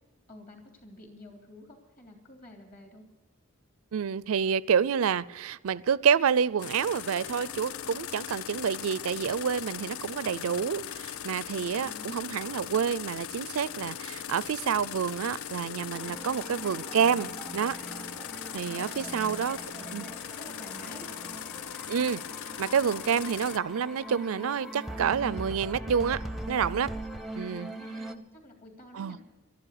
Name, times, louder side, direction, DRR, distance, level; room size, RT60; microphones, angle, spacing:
voice 1, 0.3-3.0 11.8-12.3 18.7-19.9 20.4-21.2 27.3-29.2, left 1 dB, 40° left, 3.2 m, -49 dB
voice 2, 3.9-17.7 18.5-19.6 19.9-20.0 21.9-22.2 22.6-26.2 26.5-26.9 27.4-27.7 28.9-29.2, right 7 dB, 80° right, 0.4 m, -28 dB
sound 1, 6.6-23.6, left 9 dB, 80° left, 0.5 m, -39 dB
sound 2, 15.9-28.1, right 1 dB, ahead, 0.6 m, -41 dB
12.5 x 12.0 x 8.5 m
head